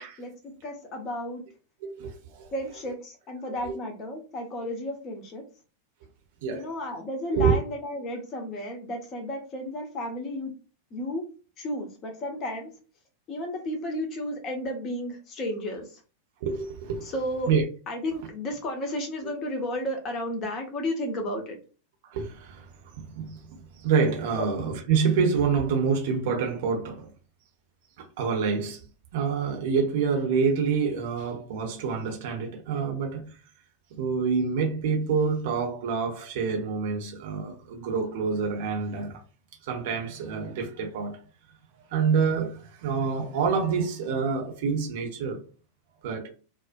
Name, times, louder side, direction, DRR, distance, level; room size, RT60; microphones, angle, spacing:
voice 1, 0.0-1.4 2.5-5.4 6.5-10.5 10.9-11.3 11.6-12.7 13.3-15.9 17.0-17.5 17.9-21.6 24.4-24.5, left 1 dB, 30° left, 0.8 m, -33 dB
voice 2, 1.8-2.5 3.6-3.8 6.4-6.7 7.3-7.6 16.4-17.1 17.5-17.6 22.1-22.7 23.0-27.1 28.0-28.8 29.1-33.3 33.9-39.2 39.6-41.2 41.9-45.4 46.0-46.3, right 5 dB, 50° right, 0.7 m, -27 dB
2.5 x 2.2 x 2.5 m
figure-of-eight pair, 90°, 0 cm